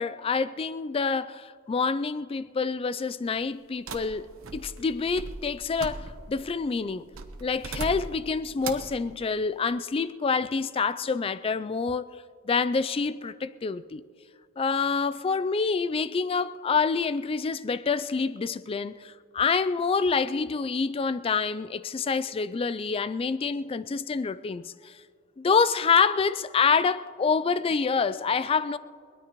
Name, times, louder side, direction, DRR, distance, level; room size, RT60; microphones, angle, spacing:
voice 1, 0.0-7.0 7.4-12.1 12.5-14.0 14.6-25.0 25.4-28.8, left 5 dB, 25° left, 0.3 m, -27 dB
sound 1, 3.9-6.4 7.1-8.3 8.6-9.0, right 3 dB, 75° right, 1.1 m, -38 dB
22.5 x 19.0 x 3.0 m
head